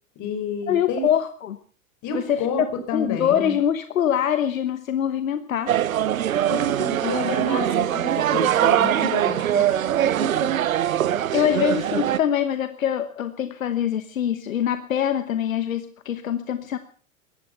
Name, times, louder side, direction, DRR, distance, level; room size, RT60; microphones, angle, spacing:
voice 1, 0.2-1.1 2.0-3.5 6.3-9.8 10.0-10.5 11.5-11.6, left 4 dB, 45° left, 6 dB, 5.7 m, -30 dB
voice 2, 0.7-1.6 2.1-2.7 2.9-5.7 11.3-16.8, left 9 dB, 85° left, 11 dB, 1.1 m, -24 dB
sound 1, 5.7-12.2, right 11 dB, 85° right, 0.9 m, -22 dB
18.0 x 14.0 x 5.7 m, 0.42 s
hypercardioid pair, 90°, 40 cm